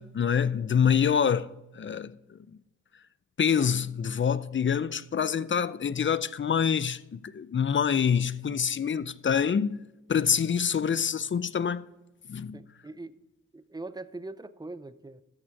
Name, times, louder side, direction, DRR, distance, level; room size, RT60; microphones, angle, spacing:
voice 1, 0.0-2.4 3.4-9.8 10.1-11.8 12.3-12.6, left 7 dB, 40° left, 0.5 m, -26 dB
voice 2, 12.5-13.2 13.5-15.2, right 2 dB, 15° right, 0.5 m, -41 dB
13.5 x 6.1 x 4.6 m
cardioid pair, 70°, 31 cm